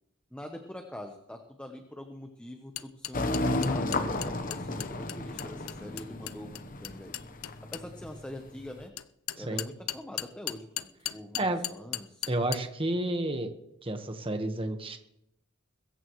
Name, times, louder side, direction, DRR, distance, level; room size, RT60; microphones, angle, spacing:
voice 1, 0.3-7.1 7.7-8.9 9.3-11.5 11.7-12.3, left 1 dB, 5° left, 4 dB, 1.0 m, -44 dB
sound 1, 2.8-7.8 9.0-12.6, left 13 dB, 85° left, 0.6 m, -36 dB
sound 2, 3.1-8.8, left 2 dB, 40° left, 1.0 m, -33 dB
voice 2, 12.3-13.5 13.8-15.0, right 1 dB, 25° right, 6 dB, 1.4 m, -30 dB
22.0 x 14.5 x 3.2 m, 0.82 s
head